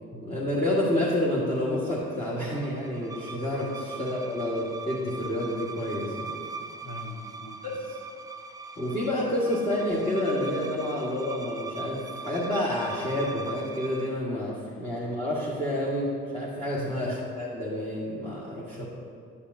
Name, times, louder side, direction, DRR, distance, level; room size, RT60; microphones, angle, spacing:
voice 1, 0.1-6.1 7.6-7.7 8.8-18.8, left 1 dB, 20° left, -9 dB, 1.5 m, -29 dB
sound 1, 1.5-14.2, right 4 dB, 10° right, 0.3 m, -41 dB
voice 2, 6.8-7.6 14.7-14.8 16.7-17.0 18.8-18.9, left 1 dB, 40° left, 2 dB, 1.0 m, -41 dB
8.5 x 8.4 x 2.6 m, 2.2 s
cardioid pair, 90°, 30 cm